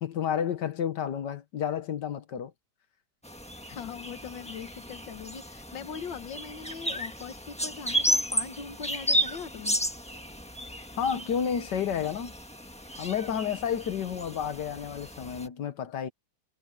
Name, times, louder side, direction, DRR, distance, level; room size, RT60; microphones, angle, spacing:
voice 1, 0.0-2.5 11.0-12.3 13.0-16.1, left 8 dB, 70° left, 1.6 m, -31 dB
sound 1, 3.2-15.5, equal, 5° left, 1.2 m, -33 dB
voice 2, 3.7-9.8, left 6 dB, 85° left, 2.0 m, -41 dB
omnidirectional pair, 2.0 m